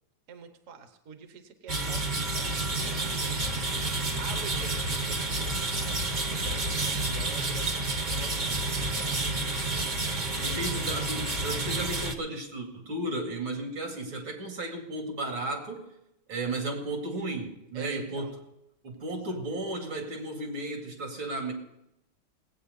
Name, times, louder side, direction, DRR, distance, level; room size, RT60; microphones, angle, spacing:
voice 1, 0.3-3.6 4.2-7.7 8.1-9.3 10.5-10.8 17.7-18.3 19.1-19.4, right 6 dB, 45° right, 8 dB, 1.2 m, -46 dB
sound 1, 1.7-12.1, right 2 dB, 30° right, 0.9 m, -30 dB
voice 2, 10.4-15.9 16.3-18.3 18.8-21.5, right 2 dB, 75° right, 2 dB, 3.2 m, -34 dB
18.5 x 8.8 x 5.3 m, 0.84 s
omnidirectional pair, 2.2 m